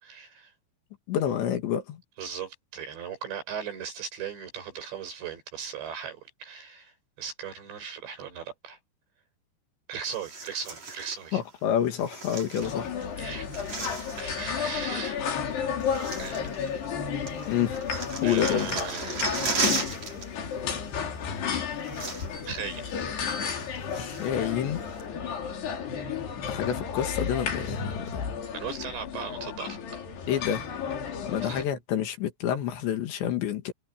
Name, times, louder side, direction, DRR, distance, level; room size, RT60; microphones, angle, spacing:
voice 1, 0.0-0.5 2.2-8.8 9.9-11.4 13.2-13.5 13.9-15.7 16.2-16.5 18.2-19.6 22.5-22.9 28.5-30.4 31.4-31.6, right 6 dB, 90° right, 8.6 m, -38 dB
voice 2, 1.1-2.0 11.3-12.9 17.5-17.8 18.2-18.8 23.9-24.8 26.5-28.3 30.3-30.7 31.3-33.7, left 9 dB, 85° left, 4.6 m, -28 dB
sound 1, 10.1-11.2 12.0-13.0 13.3-14.5 15.4-15.5 15.8-17.0 17.3-20.3 20.5-20.7 21.5-21.6 21.8-22.5 22.9-23.0 23.5-24.5 25.0-25.1, right 3 dB, 40° right, 6.5 m, -35 dB
sound 2, 12.6-31.7, left 7 dB, 70° left, 5.3 m, -32 dB
omnidirectional pair, 4.9 m